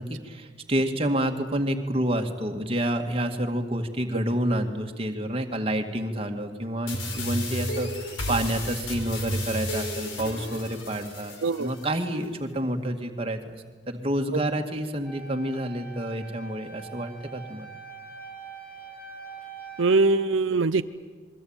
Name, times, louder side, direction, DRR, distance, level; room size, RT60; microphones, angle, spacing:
voice 1, 0.0-11.3 11.6-13.5 13.9-17.7, right 1 dB, 30° right, 4 dB, 2.0 m, -28 dB
sound 1, 6.9-11.9, left 1 dB, 85° left, 5.4 m, -33 dB
voice 2, 11.4-11.7 14.3-14.4 19.8-20.8, right 3 dB, 85° right, 10 dB, 0.7 m, -22 dB
sound 2, 15.0-20.0, right 5 dB, 5° left, 6.6 m, -43 dB
27.5 x 22.5 x 8.9 m, 1.4 s
head